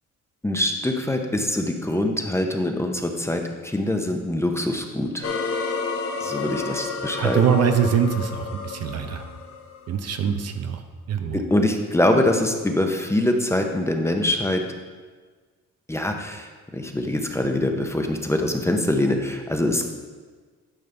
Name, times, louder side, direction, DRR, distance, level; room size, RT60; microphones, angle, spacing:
voice 1, 0.4-5.3 6.2-7.4 11.3-14.6 15.9-19.9, left 1 dB, 10° left, 4 dB, 0.8 m, -24 dB
sound 1, 5.2-10.2, left 4 dB, 50° left, 0.8 m, -31 dB
voice 2, 7.2-9.2 9.9-10.8 11.1-11.4, right 7 dB, 55° right, 7 dB, 0.7 m, -23 dB
11.0 x 5.1 x 3.4 m, 1.4 s
cardioid pair, 90°, 30 cm